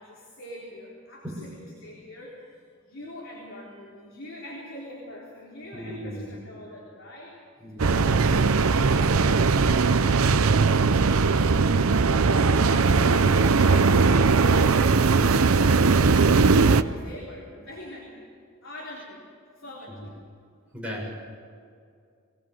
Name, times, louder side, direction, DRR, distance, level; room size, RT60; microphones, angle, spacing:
voice 1, 0.0-2.5 2.9-7.4 7.7-15.1 15.6-18.3 18.6-19.3 19.5-20.1, left 1 dB, 65° left, -4 dB, 4.0 m, -44 dB
voice 2, 5.7-6.3 7.6-8.3 12.7-13.2 16.4-16.8 20.7-21.1, equal, 5° right, -5 dB, 6.8 m, -36 dB
sound 1, 7.8-16.8, right 4 dB, 85° right, 0.7 m, -19 dB
23.5 x 18.5 x 7.8 m, 2.3 s
head